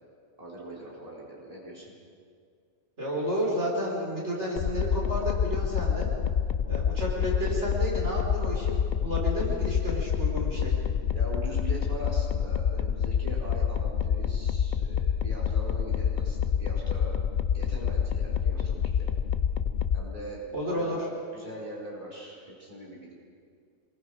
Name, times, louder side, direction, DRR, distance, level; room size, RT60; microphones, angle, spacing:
voice 1, 0.4-1.9 11.1-17.1 17.5-19.2 19.9-23.2, right 1 dB, 30° right, -5 dB, 4.5 m, -41 dB
voice 2, 3.0-6.1 6.7-10.7 20.5-21.0, equal, 65° right, -3 dB, 4.9 m, -31 dB
sound 1, 4.6-20.0, left 8 dB, 50° left, 0.6 m, -27 dB
26.5 x 22.0 x 4.8 m, 2.2 s
omnidirectional pair, 1.3 m